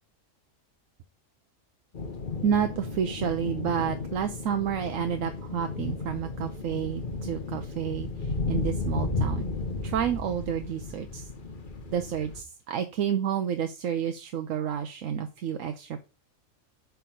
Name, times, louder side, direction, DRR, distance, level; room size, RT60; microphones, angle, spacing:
sound 1, 1.9-12.4, left 3 dB, 40° left, 1.0 m, -34 dB
voice 1, 2.4-9.5 9.8-11.3 11.9-16.0, right 8 dB, 75° right, 7 dB, 1.0 m, -30 dB
7.9 x 3.6 x 6.2 m, 0.31 s
omnidirectional pair, 1.4 m